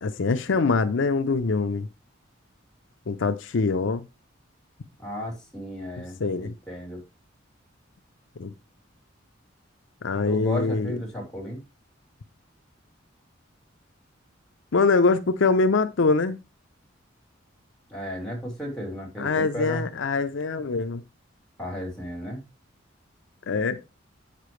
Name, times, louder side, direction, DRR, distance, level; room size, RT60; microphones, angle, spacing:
voice 1, 0.0-1.9 3.1-4.0 6.2-6.5 8.4-8.5 10.0-11.0 14.7-16.4 19.2-21.0 23.5-23.8, left 4 dB, 65° left, 0.5 m, -23 dB
voice 2, 5.0-7.0 10.3-11.6 17.9-19.8 21.6-22.4, equal, 5° left, 3.1 m, -34 dB
7.5 x 6.7 x 3.1 m
head